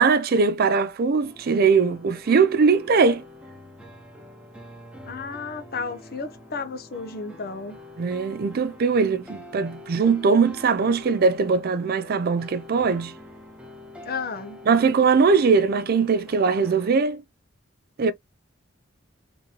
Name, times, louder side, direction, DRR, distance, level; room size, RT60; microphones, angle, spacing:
voice 1, 0.0-3.2 8.0-13.1 14.7-17.2 18.0-18.1, right 5 dB, 50° right, 0.4 m, -20 dB
sound 1, 1.2-17.0, left 1 dB, 5° right, 1.0 m, -44 dB
voice 2, 5.0-7.8 14.0-14.6, left 4 dB, 50° left, 0.7 m, -33 dB
3.5 x 3.0 x 2.8 m
head